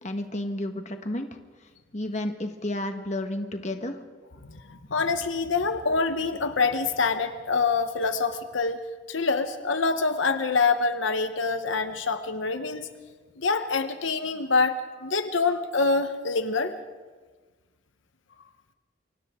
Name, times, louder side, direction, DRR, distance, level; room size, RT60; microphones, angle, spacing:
voice 1, 0.0-1.3 1.9-4.0, left 1 dB, 35° left, 5 dB, 1.5 m, -31 dB
voice 2, 4.7-8.8 9.1-12.9 13.4-16.7, left 4 dB, 80° left, 8 dB, 1.1 m, -25 dB
28.5 x 25.0 x 3.8 m, 1.4 s
head